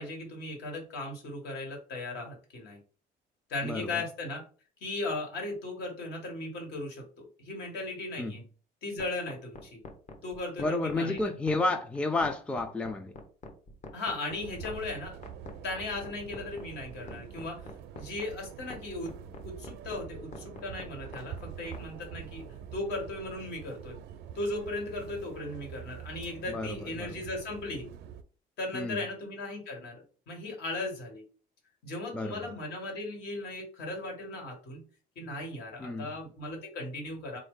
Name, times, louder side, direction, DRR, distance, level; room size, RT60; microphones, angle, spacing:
voice 1, 0.0-2.8 3.5-4.4 4.8-8.4 8.8-9.8 10.2-11.2 13.9-15.2 15.6-17.6 18.0-19.1 19.4-24.0 24.3-27.9 28.6-31.2 31.8-34.8 35.2-37.4, left 2 dB, 75° left, 1.8 m, -37 dB
voice 2, 3.6-4.0 8.2-8.4 10.6-13.1 26.5-27.2 28.7-29.0 32.1-32.5 35.8-36.1, left 2 dB, 5° left, 0.4 m, -31 dB
sound 1, 9.0-21.8, left 3 dB, 45° left, 0.9 m, -45 dB
sound 2, 14.4-28.2, right 9 dB, 80° right, 0.5 m, -45 dB
3.8 x 2.6 x 3.7 m
cardioid pair, 110°, 17 cm